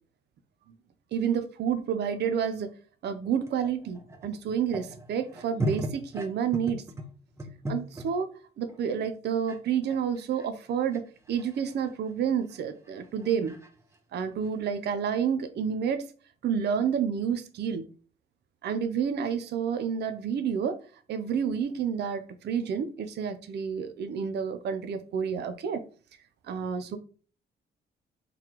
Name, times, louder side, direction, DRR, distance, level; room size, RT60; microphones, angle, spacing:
voice 1, 1.1-2.7 3.0-6.8 7.7-8.3 8.6-13.6 14.1-16.1 16.4-17.9 18.6-20.8 21.1-25.8 26.5-27.0, right 7 dB, 60° right, 0.5 m, -29 dB
sound 1, 3.4-8.1 8.6-8.8 9.5-9.6 9.8-14.7, equal, 15° right, 0.7 m, -37 dB
3.9 x 3.2 x 2.9 m
cardioid pair, 90°, 20 cm